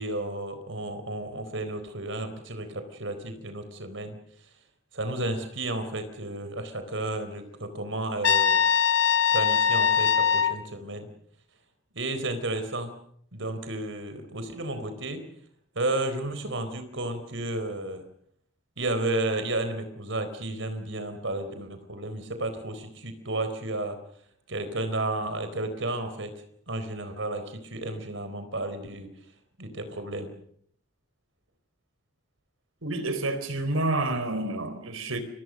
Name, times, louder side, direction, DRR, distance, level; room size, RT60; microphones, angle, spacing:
voice 1, 0.0-4.1 4.9-8.6 9.3-11.1 11.9-12.9 13.3-15.3 15.7-18.0 18.8-24.0 24.5-26.3 26.7-29.1 29.6-30.3, right 2 dB, 70° right, 4.3 m, -32 dB
Trumpet, 8.2-10.6, left 7 dB, 70° left, 1.8 m, -22 dB
voice 2, 32.8-35.2, right 2 dB, 85° right, 4.2 m, -29 dB
28.5 x 24.0 x 6.5 m
head